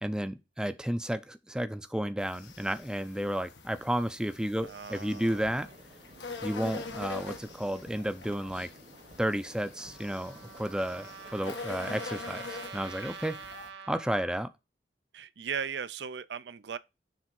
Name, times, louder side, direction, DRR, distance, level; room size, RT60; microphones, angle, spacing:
voice 1, 0.0-5.7 6.4-8.7 9.2-13.4 13.9-14.5, equal, 5° right, 0.5 m, -32 dB
sound 1, 2.2-13.7, left 4 dB, 90° left, 1.6 m, -44 dB
voice 2, 4.6-5.7 15.1-16.8, right 7 dB, 70° right, 0.5 m, -38 dB
sound 2, 4.9-13.0, right 2 dB, 35° right, 0.9 m, -54 dB
Trumpet, 9.8-14.5, right 5 dB, 90° right, 1.0 m, -46 dB
7.2 x 3.6 x 6.0 m
head